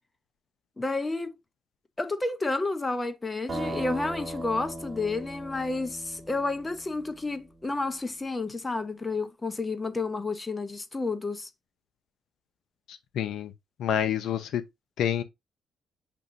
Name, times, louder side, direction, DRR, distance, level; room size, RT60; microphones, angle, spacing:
voice 1, 0.8-1.3 2.0-11.5, left 3 dB, 20° left, 0.8 m, -30 dB
sound 1, 3.5-7.3, right 1 dB, 30° right, 1.7 m, -38 dB
voice 2, 12.9-13.5 13.8-14.6 15.0-15.2, left 9 dB, 75° left, 0.6 m, -28 dB
6.8 x 3.0 x 2.6 m
cardioid pair, 90°, 0 cm